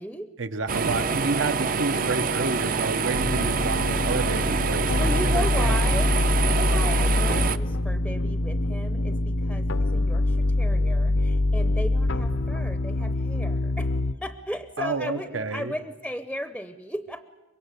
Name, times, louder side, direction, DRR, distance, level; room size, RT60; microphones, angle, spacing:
voice 1, 0.4-5.9 14.8-15.7, right 3 dB, 70° right, 11 dB, 1.0 m, -30 dB
sound 1, 0.7-7.6, right 5 dB, 45° right, 0.7 m, -26 dB
sound 2, 3.1-14.1, left 2 dB, 70° left, 0.8 m, -24 dB
voice 2, 5.0-13.9 14.2-17.3, equal, ahead, 10 dB, 0.7 m, -35 dB
24.5 x 22.5 x 8.3 m, 1.3 s
head